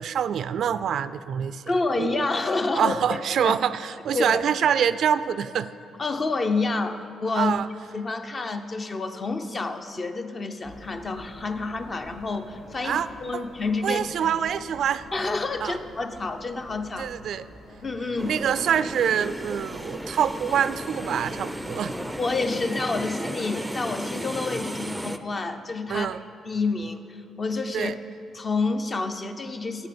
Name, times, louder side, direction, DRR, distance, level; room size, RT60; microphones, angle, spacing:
voice 1, 0.0-1.6 2.0-2.2 2.7-5.7 7.4-7.7 12.8-13.1 13.8-15.0 15.6-15.8 17.0-17.4 18.2-21.9 25.9-26.2 27.7-27.9, right 8 dB, 65° right, 14 dB, 0.3 m, -25 dB
voice 2, 1.7-3.2 3.4-3.5 4.1-4.4 5.9-7.5 7.9-14.3 15.1-17.1 17.8-18.4 22.2-26.1 26.5-27.9 28.3-29.9, left 3 dB, 35° left, 8 dB, 0.7 m, -28 dB
sound 1, 10.6-22.2, left 1 dB, 60° left, 2.0 m, -48 dB
sound 2, 18.2-25.2, equal, 5° right, 0.5 m, -34 dB
10.5 x 8.3 x 6.9 m, 2.6 s
cardioid pair, 90°, 0 cm